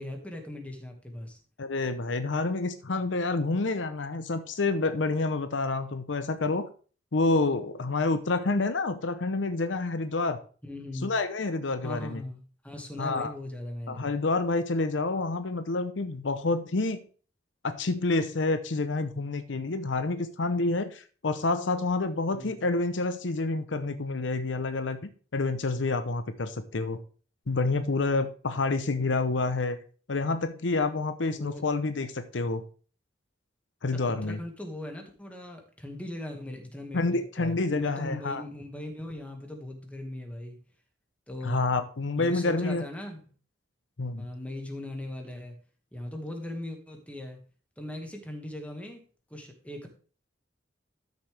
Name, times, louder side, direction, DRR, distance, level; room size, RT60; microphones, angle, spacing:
voice 1, 0.0-1.4 10.6-11.1 11.8-14.1 22.3-22.6 31.3-31.6 34.1-40.6 41.3-41.7 42.2-43.2 44.2-45.5 45.9-47.4 47.8-49.0 49.3-49.9, left 1 dB, 10° left, 3 dB, 1.9 m, -39 dB
voice 2, 1.6-6.7 7.1-10.4 11.0-12.2 13.0-13.3 13.9-17.0 17.6-25.0 25.3-27.0 27.5-29.8 30.1-32.6 33.8-34.4 36.9-38.4 41.4-42.8 44.0-44.3, left 3 dB, 80° left, 10 dB, 0.8 m, -28 dB
12.5 x 6.7 x 3.4 m, 0.40 s
head